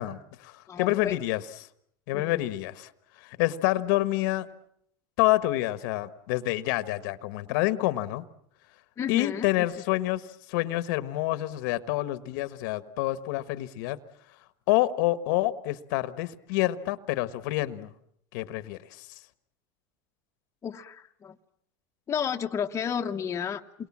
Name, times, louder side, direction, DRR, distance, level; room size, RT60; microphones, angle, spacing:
voice 1, 0.0-1.4 2.1-2.9 3.2-4.5 5.2-8.2 9.1-14.0 14.7-17.9 18.3-19.1, left 17 dB, 75° left, 13 dB, 1.3 m, -28 dB
voice 2, 0.7-1.2 2.1-2.4 9.0-9.5 20.6-21.4 22.1-23.9, left 7 dB, 25° left, 3 dB, 1.1 m, -32 dB
28.5 x 23.0 x 7.4 m, 0.71 s
supercardioid pair, 130°, 11 cm